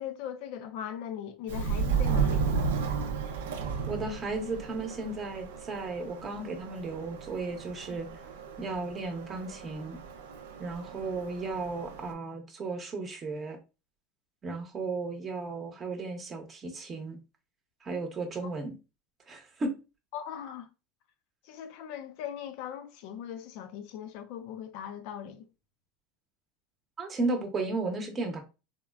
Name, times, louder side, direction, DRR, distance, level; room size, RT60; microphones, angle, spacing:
voice 1, 0.0-2.6 20.1-20.7 21.4-25.5, left 9 dB, 65° left, 0.4 m, -39 dB
Subway metro underground, 1.5-12.1, right 5 dB, 90° right, 0.5 m, -34 dB
voice 2, 3.9-8.1 8.6-10.0 10.6-13.6 14.4-17.2 17.8-18.7 19.3-19.7 27.0-28.4, right 3 dB, 25° right, 0.7 m, -34 dB
3.5 x 2.1 x 2.3 m
supercardioid pair, 120°, 0 cm